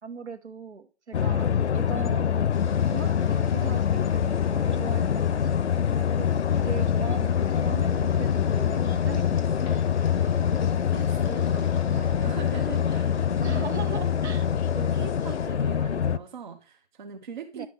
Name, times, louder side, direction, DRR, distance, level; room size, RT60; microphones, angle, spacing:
voice 1, 0.0-2.3 2.9-5.7 5.9-6.3 6.6-9.6 13.4-14.5 17.5-17.7, right 5 dB, 75° right, 8 dB, 1.6 m, -39 dB
sound 1, 1.1-16.2, left 8 dB, 75° left, 0.6 m, -25 dB
sound 2, 2.5-15.5, left 3 dB, 5° left, 0.6 m, -50 dB
voice 2, 10.2-13.4 14.5-17.7, right 5 dB, 45° right, 7 dB, 0.8 m, -42 dB
10.5 x 6.0 x 3.5 m, 0.34 s
hypercardioid pair, 165°, 34 cm